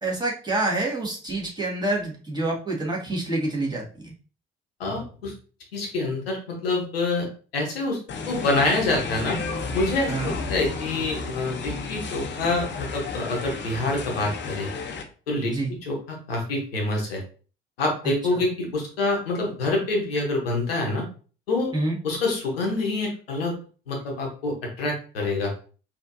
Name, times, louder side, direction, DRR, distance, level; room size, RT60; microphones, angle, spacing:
voice 1, 0.0-4.1 10.1-10.4 15.5-15.8 18.3-18.4 21.7-22.0, right 2 dB, 15° right, -3 dB, 1.8 m, -27 dB
voice 2, 4.8-5.3 5.7-7.3 7.5-8.0 8.3-9.4 9.7-14.7 15.3-15.6 15.8-17.2 17.8-21.0 21.5-21.7 22.0-23.6 23.9-25.5, left 2 dB, 80° left, 0 dB, 0.9 m, -26 dB
sound 1, 8.1-15.0, left 4 dB, 40° left, 0.7 m, -33 dB
4.2 x 2.8 x 2.5 m, 0.38 s
figure-of-eight pair, 45°, 29 cm